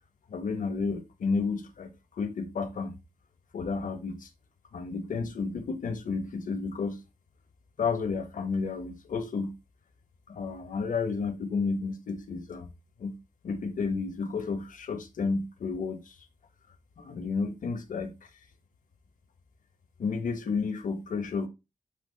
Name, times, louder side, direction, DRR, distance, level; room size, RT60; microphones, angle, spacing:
voice 1, 0.3-3.0 3.5-4.3 4.7-7.0 7.8-9.5 10.3-12.7 13.0-13.2 13.4-16.1 17.0-18.2 20.0-21.5, left 4 dB, 80° left, 1.4 m, -31 dB
8.5 x 3.1 x 5.3 m
wide cardioid pair, 95°, 13 cm